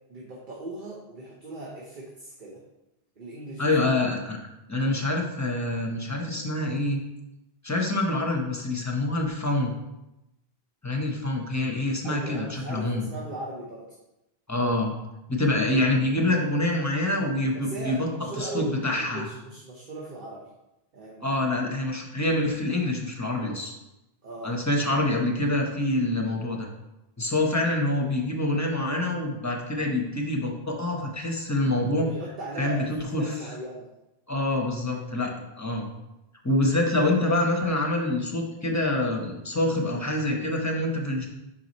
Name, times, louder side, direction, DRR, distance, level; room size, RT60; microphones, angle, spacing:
voice 1, 0.1-2.6 3.2-3.6 12.0-13.9 17.5-20.5 20.9-21.6 24.2-24.6 32.0-32.9 33.2-33.9, right 2 dB, 55° right, -4 dB, 1.1 m, -38 dB
voice 2, 3.6-4.4 4.7-7.0 7.6-9.7 10.8-13.0 14.5-14.9 15.3-18.1 18.4-19.3 21.2-23.7 24.4-26.7 27.2-32.1 32.6-33.2 34.3-35.9 36.4-41.3, left 1 dB, 20° left, 0 dB, 0.8 m, -26 dB
5.8 x 4.7 x 4.1 m, 0.92 s
omnidirectional pair, 1.0 m